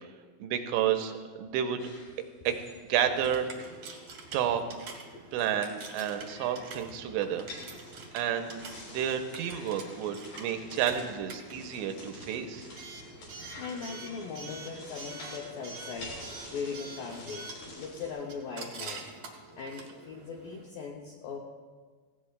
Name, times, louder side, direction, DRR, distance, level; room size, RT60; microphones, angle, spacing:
voice 1, 0.4-1.8 2.4-2.6 2.9-3.7 4.3-4.6 5.3-7.4 8.1-12.7, right 9 dB, 85° right, 6 dB, 3.0 m, -30 dB
sound 1, 1.8-4.4 4.8-5.0 5.3-18.1, left 2 dB, 55° left, 5.3 m, -49 dB
Coin (dropping) / Alarm, 3.1-20.6, right 3 dB, 65° right, 1.6 m, -46 dB
voice 2, 13.2-17.5 17.8-19.2 19.6-21.4, left 5 dB, 80° left, 0 dB, 2.0 m, -40 dB
17.5 x 16.5 x 2.3 m, 1.5 s
omnidirectional pair, 5.2 m